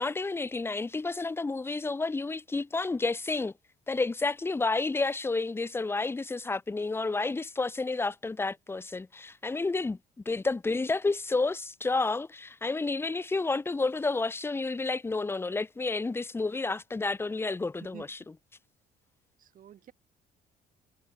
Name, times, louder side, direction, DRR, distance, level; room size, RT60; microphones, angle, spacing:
voice 1, 0.0-3.5 3.9-10.0 10.3-18.2, left 3 dB, 15° left, 0.8 m, -30 dB
voice 2, 17.8-18.3 19.4-19.9, right 10 dB, 55° right, 7.1 m, -50 dB
cardioid pair, 110°, 17 cm